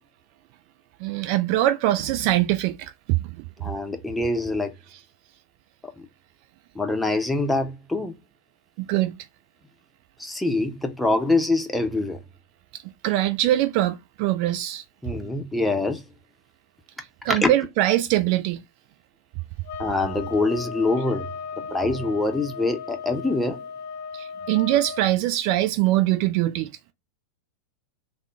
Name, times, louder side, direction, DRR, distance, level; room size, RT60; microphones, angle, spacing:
voice 1, 1.0-3.4 8.8-9.1 13.0-14.8 17.2-18.6 24.1-26.7, right 14 dB, 45° right, 0.4 m, -22 dB
voice 2, 3.6-4.7 6.0-6.1 6.7-8.1 10.2-12.2 15.0-16.0 17.3-17.5 19.8-21.3 21.7-23.6, left 2 dB, 5° left, 0.7 m, -24 dB
sound 1, 19.6-25.1, left 6 dB, 50° left, 0.5 m, -36 dB
3.6 x 2.1 x 3.5 m
figure-of-eight pair, 90°, 0 cm